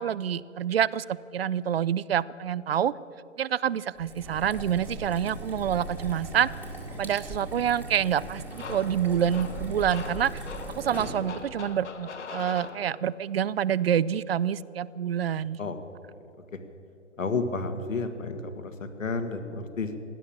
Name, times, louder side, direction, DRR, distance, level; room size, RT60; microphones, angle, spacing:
voice 1, 0.0-2.9 3.4-6.5 7.0-10.3 10.8-15.6, right 9 dB, 50° right, 21 dB, 0.5 m, -27 dB
sound 1, 3.9-11.6, right 2 dB, 5° right, 1.9 m, -39 dB
sound 2, 8.5-13.3, left 5 dB, 60° left, 1.5 m, -41 dB
voice 2, 17.2-20.0, left 3 dB, 75° left, 8 dB, 1.8 m, -31 dB
17.0 x 11.5 x 7.2 m, 2.9 s
figure-of-eight pair, 140°, 39 cm